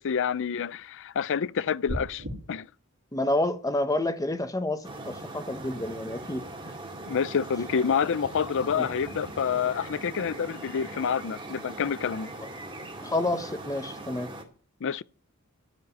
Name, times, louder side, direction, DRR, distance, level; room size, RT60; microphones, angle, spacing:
voice 1, 0.0-2.7 7.1-12.3 14.8-15.0, left 7 dB, 60° left, 0.5 m, -28 dB
sound 1, 1.9-2.3, equal, 60° right, 3.0 m, -33 dB
voice 2, 3.1-6.4 8.7-8.9 13.0-14.3, left 1 dB, 15° left, 1.2 m, -29 dB
sound 2, 4.8-14.4, right 2 dB, 25° right, 2.5 m, -40 dB
14.0 x 5.2 x 9.3 m
head